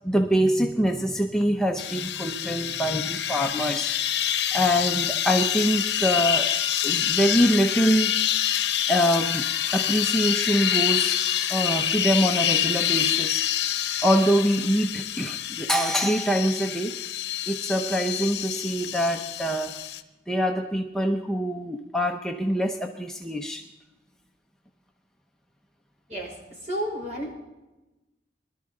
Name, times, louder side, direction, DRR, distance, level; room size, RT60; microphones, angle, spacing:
voice 1, 0.0-3.9 4.5-6.5 6.8-8.1 8.9-9.5 9.7-11.2 11.5-13.4 14.0-17.0 17.5-19.8 20.3-23.7, equal, 5° left, 2 dB, 0.7 m, -24 dB
sound 1, 1.8-20.0, left 10 dB, 70° left, 0.8 m, -27 dB
voice 2, 26.1-27.3, equal, 40° right, -1 dB, 5.6 m, -32 dB
21.0 x 12.5 x 3.8 m, 1.0 s
head